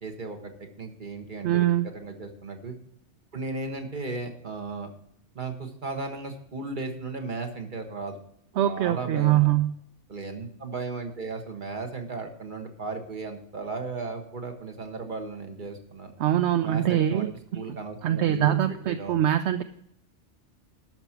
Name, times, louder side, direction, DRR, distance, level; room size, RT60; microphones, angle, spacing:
voice 1, 0.0-0.5 0.8-1.7 1.9-2.7 3.3-4.9 5.3-8.2 8.6-9.5 10.1-16.1 16.6-19.2, right 3 dB, 45° right, 5 dB, 1.5 m, -35 dB
voice 2, 1.4-1.9 8.6-9.7 16.2-17.3 18.0-19.6, right 12 dB, 75° right, 10 dB, 0.8 m, -23 dB
12.0 x 6.2 x 5.9 m, 0.72 s
omnidirectional pair, 1.2 m